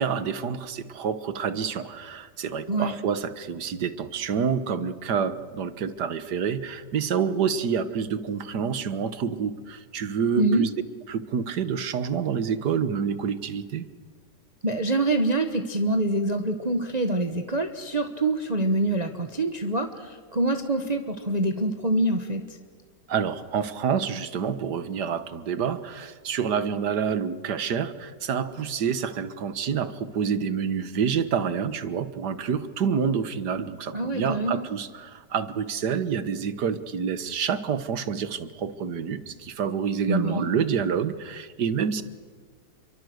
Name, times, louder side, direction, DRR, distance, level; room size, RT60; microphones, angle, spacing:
voice 1, 0.0-10.7 11.1-13.9 23.1-42.0, right 7 dB, 75° right, 13 dB, 1.9 m, -28 dB
voice 2, 14.6-22.6 33.9-34.7 40.1-40.5, right 2 dB, 25° right, 6 dB, 1.4 m, -25 dB
29.0 x 23.5 x 8.0 m, 1.5 s
omnidirectional pair, 1.9 m